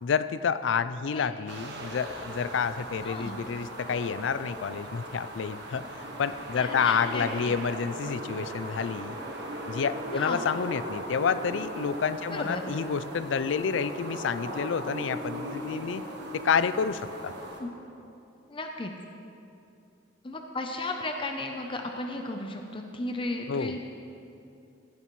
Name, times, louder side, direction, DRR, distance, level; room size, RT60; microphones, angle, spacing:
voice 1, 0.0-5.9 6.2-9.2 9.7-16.0 16.3-17.3 23.5-23.8, left 6 dB, 75° left, 14 dB, 0.4 m, -29 dB
sound 1, 1.5-17.6, right 1 dB, 60° right, 1.4 m, -38 dB
voice 2, 3.0-3.4 6.6-7.5 10.1-10.4 12.3-12.6 17.6-17.7 18.5-18.9 20.2-23.8, left 2 dB, 25° left, 3 dB, 0.6 m, -34 dB
16.0 x 11.0 x 3.1 m, 2.7 s
head